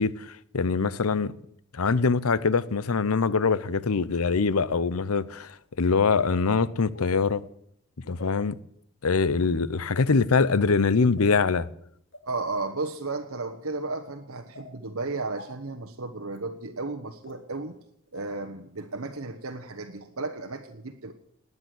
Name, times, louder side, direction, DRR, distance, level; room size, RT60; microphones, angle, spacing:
voice 1, 0.0-1.3 1.7-7.4 8.1-8.6 9.0-11.7, left 4 dB, 85° left, 0.7 m, -23 dB
sound 1, 4.4-4.5 5.4-5.5 6.9-7.2 8.2-8.3 9.1-9.4 10.3-10.6 11.2-11.4 12.1-12.2 12.8-13.0 13.8-13.9 14.5-14.7 15.4-15.5 16.3-16.4 17.2-17.3 18.2-18.3 18.8-18.9, left 2 dB, 55° left, 3.1 m, -46 dB
voice 2, 12.2-17.8 18.1-21.1, right 3 dB, 80° right, 1.2 m, -34 dB
18.5 x 9.7 x 7.8 m
head